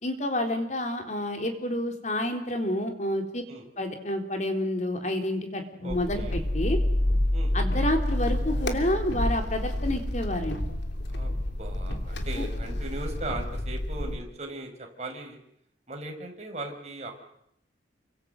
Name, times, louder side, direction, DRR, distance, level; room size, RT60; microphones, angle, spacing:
voice 1, 0.0-3.4 3.8-6.8 7.5-10.6 12.4-12.5, left 1 dB, 40° left, 4 dB, 4.1 m, -29 dB
voice 2, 5.8-6.4 7.3-7.5 11.1-11.3 11.6-15.4 15.9-17.1, right 2 dB, 35° right, 2 dB, 5.3 m, -38 dB
sound 1, 5.9-14.2, left 1 dB, 70° left, 3.1 m, -28 dB
29.0 x 25.0 x 8.0 m, 0.76 s
head